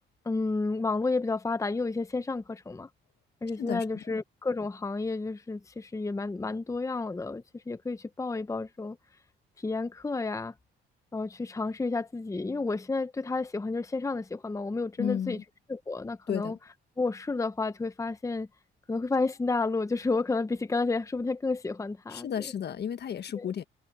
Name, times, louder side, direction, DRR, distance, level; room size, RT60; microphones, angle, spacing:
voice 1, 0.2-2.9 3.4-9.0 9.6-10.5 11.1-15.4 15.7-16.6 17.0-18.5 18.9-22.5 23.3-23.5, left 3 dB, 15° left, 0.8 m, -31 dB
voice 2, 15.0-15.4 16.3-16.6 22.1-23.6, left 8 dB, 55° left, 1.3 m, -32 dB
cardioid pair, 90°, 20 cm